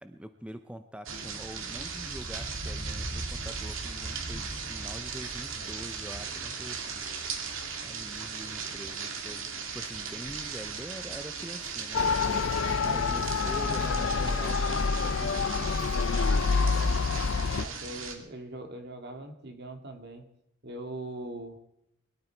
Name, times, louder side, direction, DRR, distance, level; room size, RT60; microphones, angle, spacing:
voice 1, 0.0-7.1 7.8-9.5 9.7-12.4 12.9-16.2, equal, 5° right, 8 dB, 0.7 m, -44 dB
sound 1, 1.1-18.2, right 5 dB, 80° right, 2.4 m, -37 dB
Motor vehicle (road) / Siren, 11.9-17.7, left 4 dB, 75° left, 0.6 m, -27 dB
voice 2, 12.7-13.3 17.4-20.2 20.6-21.6, right 1 dB, 55° right, 6 dB, 2.1 m, -41 dB
22.0 x 12.5 x 4.6 m, 0.82 s
head